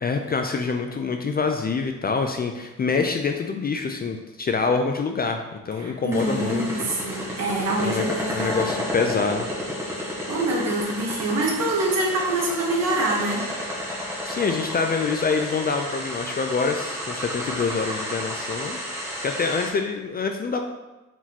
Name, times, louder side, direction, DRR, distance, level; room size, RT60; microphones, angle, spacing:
voice 1, 0.0-6.9 7.8-9.5 14.2-18.8 19.1-20.6, left 4 dB, 30° left, 4 dB, 0.4 m, -26 dB
voice 2, 5.7-8.7 9.9-13.5, right 2 dB, 55° right, -1 dB, 1.3 m, -26 dB
sound 1, 6.1-19.7, equal, 10° right, 1.4 m, -32 dB
4.7 x 3.6 x 2.9 m, 1.1 s
cardioid pair, 85°, 31 cm